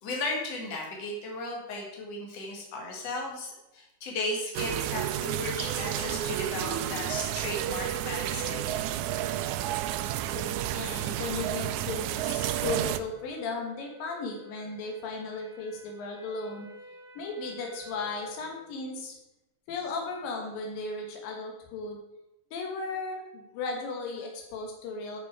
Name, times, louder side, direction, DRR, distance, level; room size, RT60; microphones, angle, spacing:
voice 1, 0.0-8.6, left 2 dB, 50° left, -1 dB, 3.1 m, -35 dB
sound 1, 4.5-13.0, right 12 dB, 90° right, 1.6 m, -31 dB
sound 2, 8.7-18.6, right 2 dB, 40° right, 1.3 m, -52 dB
voice 2, 9.9-16.7 17.2-19.2 19.7-22.0 22.5-25.2, left 3 dB, 80° left, 1 dB, 3.0 m, -36 dB
10.0 x 6.2 x 4.7 m, 0.94 s
omnidirectional pair, 4.0 m